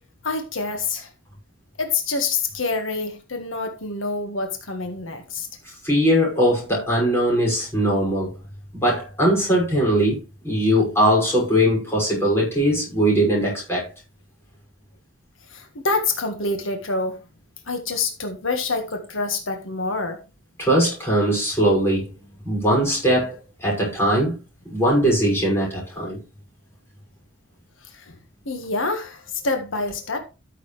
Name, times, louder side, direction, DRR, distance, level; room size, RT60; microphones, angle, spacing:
voice 1, 0.2-1.1 1.8-5.5 15.5-17.2 17.7-20.2 27.8-28.1 28.4-30.2, left 3 dB, 80° left, 1.6 m, -26 dB
voice 2, 5.8-8.3 8.7-10.2 10.4-13.9 20.6-22.1 22.4-24.4 24.7-26.2, equal, 10° left, 5.9 m, -20 dB
13.5 x 6.8 x 3.3 m
head